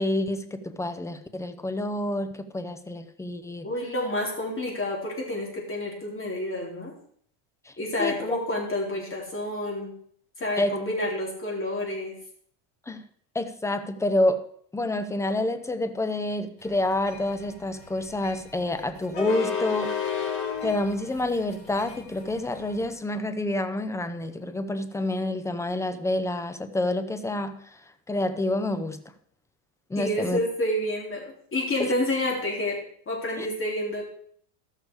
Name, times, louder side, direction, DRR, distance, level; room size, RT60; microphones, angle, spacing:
voice 1, 0.0-3.7 7.7-7.8 8.0-8.4 10.6-10.8 12.9-13.0 13.3-14.5 14.7-20.0 20.6-27.8 28.1-29.0 29.9-30.4 31.8-31.9 33.4-33.5, left 1 dB, 5° left, 10 dB, 0.6 m, -28 dB
voice 2, 3.6-6.9 7.8-9.9 10.4-12.2 30.0-32.8 33.1-34.0, left 1 dB, 25° left, -2 dB, 4.1 m, -29 dB
sound 1, 16.7-22.9, left 7 dB, 75° left, 3.8 m, -32 dB
13.5 x 6.6 x 4.9 m, 0.62 s
supercardioid pair, 120°, 50 cm